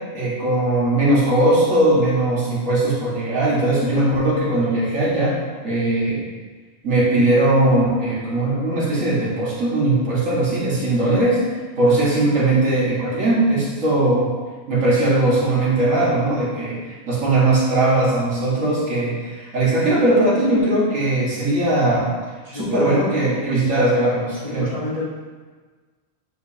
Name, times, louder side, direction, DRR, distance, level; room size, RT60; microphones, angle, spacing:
voice 1, 0.1-6.2 6.8-11.4 11.8-14.3 14.7-22.1 22.5-24.7, right 2 dB, 65° right, -7 dB, 2.2 m, -19 dB
voice 2, 22.4-23.0 24.3-25.0, left 3 dB, 30° left, -8 dB, 1.2 m, -30 dB
9.3 x 5.1 x 2.8 m, 1.4 s
omnidirectional pair, 1.5 m